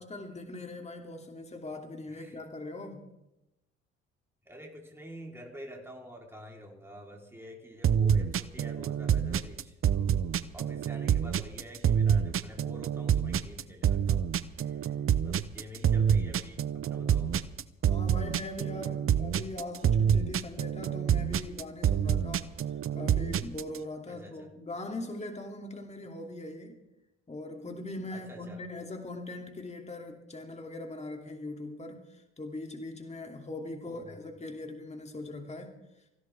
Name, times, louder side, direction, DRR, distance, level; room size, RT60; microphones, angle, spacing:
voice 1, 0.0-3.0 17.9-26.8 27.3-35.7, left 2 dB, 20° left, 3 dB, 2.8 m, -41 dB
voice 2, 2.1-2.4 4.5-17.4 24.1-24.5 28.1-28.6 33.8-34.3, equal, 5° right, 0 dB, 3.9 m, -48 dB
sound 1, 7.8-23.8, right 8 dB, 40° right, 0.9 m, -27 dB
25.0 x 16.0 x 3.6 m, 0.91 s
hypercardioid pair, 50°, 32 cm